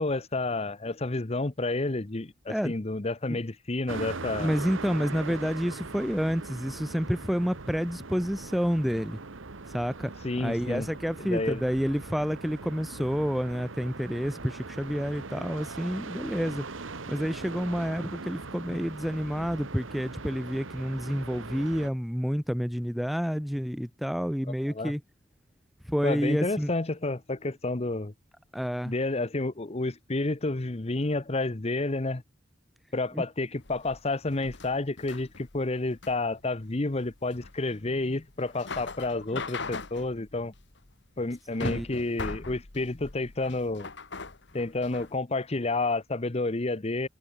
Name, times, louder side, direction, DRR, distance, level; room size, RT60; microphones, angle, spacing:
voice 1, 0.0-4.5 10.2-10.9 11.2-11.6 24.7-24.9 26.0-28.1 28.8-32.2 32.9-40.5 41.2-43.9 44.5-47.1, left 2 dB, 35° left, 0.9 m, -30 dB
sound 1, 3.9-21.9, right 3 dB, 90° right, 1.4 m, -40 dB
voice 2, 4.4-9.2 9.7-10.1 10.4-16.6 17.1-25.0 25.8-26.7 28.5-28.9 33.1-33.2 41.6-41.9, equal, ahead, 0.3 m, -29 dB
sound 2, 33.6-45.1, left 3 dB, 60° left, 2.0 m, -40 dB
head